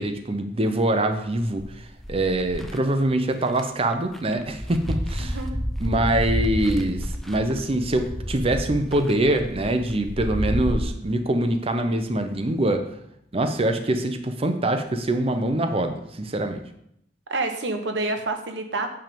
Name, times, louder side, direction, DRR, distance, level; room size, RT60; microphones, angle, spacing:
voice 1, 0.0-5.4 5.8-12.8 13.3-16.6, right 1 dB, 35° right, 7 dB, 0.7 m, -24 dB
sound 1, 1.6-2.8 3.5-3.6 3.9-10.8, equal, ahead, 0.6 m, -30 dB
voice 2, 5.2-5.6 17.3-18.9, right 2 dB, 85° right, 6 dB, 1.1 m, -28 dB
9.1 x 3.6 x 6.8 m, 0.73 s
head